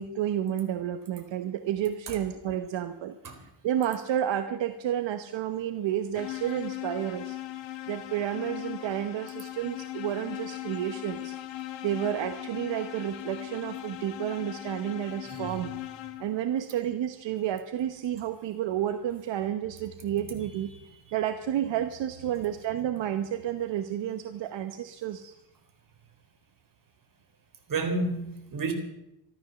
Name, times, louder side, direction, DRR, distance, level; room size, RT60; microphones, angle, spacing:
voice 1, 0.0-3.2 3.6-7.4 7.9-11.3 11.8-15.7 16.2-20.7 21.1-25.3, right 10 dB, 80° right, 1.1 m, -31 dB
sound 1, 6.1-16.5, left 15 dB, 90° left, 1.5 m, -39 dB
voice 2, 27.7-28.7, right 3 dB, 45° right, 4.0 m, -30 dB
14.0 x 13.0 x 7.0 m
cardioid pair, 110°, 44 cm